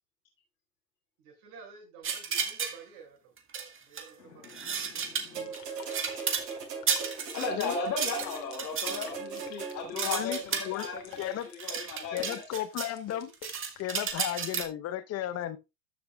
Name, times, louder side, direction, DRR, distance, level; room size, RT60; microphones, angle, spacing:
voice 1, 1.2-3.3 3.8-4.7, right 5 dB, 55° right, 6.3 m, -51 dB
sound 1, 2.0-2.8 3.4-4.1 4.4-6.5 6.9-12.9 13.2-14.6, right 6 dB, 25° right, 1.7 m, -33 dB
voice 2, 4.2-12.4, left 4 dB, 85° left, 2.8 m, -37 dB
sound 2, 5.3-10.1 11.1-11.2, right 5 dB, 80° right, 6.1 m, -40 dB
sound 3, 5.5-14.1, left 14 dB, 60° left, 2.5 m, -47 dB
voice 3, 10.0-10.9 11.2-11.5 12.1-13.3 13.8-15.6, left 12 dB, 30° left, 0.9 m, -34 dB
13.5 x 7.1 x 2.4 m
hypercardioid pair, 110°, 49 cm